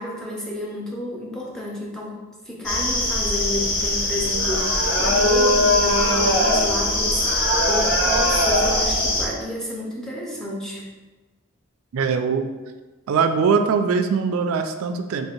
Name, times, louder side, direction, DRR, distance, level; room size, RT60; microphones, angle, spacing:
voice 1, 0.0-2.2 2.5-10.8, left 1 dB, 5° left, -4 dB, 0.7 m, -30 dB
sound 1, 2.6-9.3, left 1 dB, 60° left, 0.8 m, -20 dB
voice 2, 11.9-12.5 13.1-15.3, right 5 dB, 85° right, 7 dB, 0.3 m, -21 dB
3.3 x 2.7 x 4.3 m, 1.2 s
head